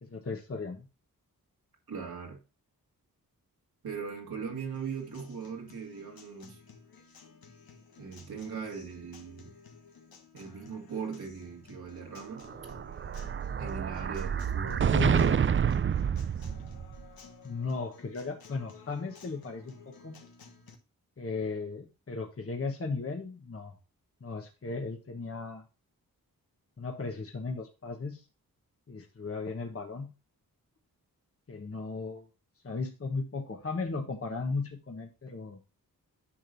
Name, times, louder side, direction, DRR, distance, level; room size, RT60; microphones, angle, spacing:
voice 1, 0.0-0.9 14.7-15.5 17.4-20.2 21.2-23.7 24.2-25.6 26.8-28.3 28.9-30.1 31.5-32.3 32.6-35.6, left 4 dB, 40° left, 1.2 m, -36 dB
voice 2, 1.9-2.4 3.8-6.6 8.0-9.5 10.3-12.4 13.6-15.2, right 6 dB, 85° right, 2.2 m, -39 dB
Acoustic guitar, 4.7-20.7, left 5 dB, 75° left, 1.4 m, -54 dB
Explosion, 12.4-17.0, right 7 dB, 35° right, 0.4 m, -28 dB
10.0 x 6.0 x 2.6 m
cardioid pair, 65°, 36 cm